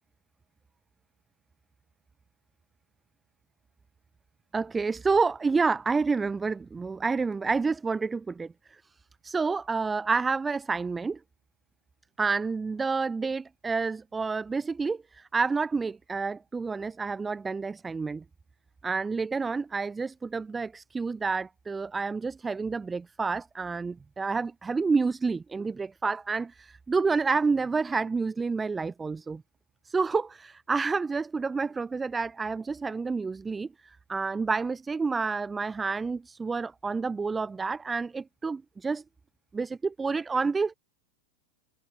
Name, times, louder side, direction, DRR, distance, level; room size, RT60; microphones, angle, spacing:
voice 1, 4.5-8.8 9.2-11.2 12.2-18.2 18.8-29.4 29.8-39.0 39.5-40.7, right 4 dB, 15° right, 4.6 m, -29 dB
figure-of-eight pair, 90°, 0 cm